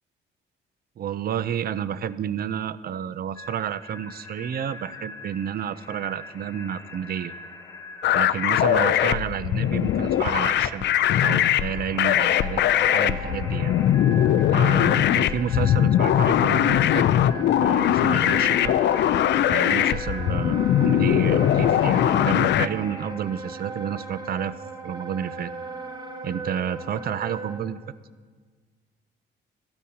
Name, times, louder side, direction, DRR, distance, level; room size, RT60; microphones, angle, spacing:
voice 1, 1.0-7.3 8.1-10.9 11.2-13.8 14.5-17.1 17.6-18.8 19.5-24.6 24.8-25.5 26.2-27.8, right 9 dB, 50° right, 15 dB, 0.5 m, -30 dB
sound 1, 3.4-23.1, left 2 dB, 20° left, 2.3 m, -43 dB
sound 2, 8.0-22.7, left 11 dB, 60° left, 0.4 m, -21 dB
Wind instrument woodwind instrument, 12.1-27.6, right 2 dB, 20° right, 1.3 m, -38 dB
14.5 x 12.5 x 2.8 m, 1.5 s
cardioid pair, 90°, 20 cm